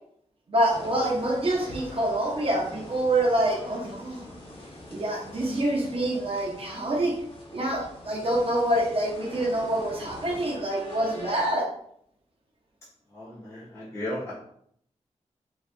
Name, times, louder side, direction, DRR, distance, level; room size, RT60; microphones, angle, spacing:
voice 1, 0.5-4.2 4.9-7.2 7.5-11.7, right 1 dB, 50° right, -3 dB, 0.7 m, -26 dB
sound 1, 0.7-11.5, left 1 dB, 45° left, 1.1 m, -43 dB
voice 2, 13.1-14.3, left 1 dB, 20° left, -9 dB, 1.0 m, -35 dB
4.4 x 2.4 x 2.5 m, 0.67 s
wide cardioid pair, 95°, 12 cm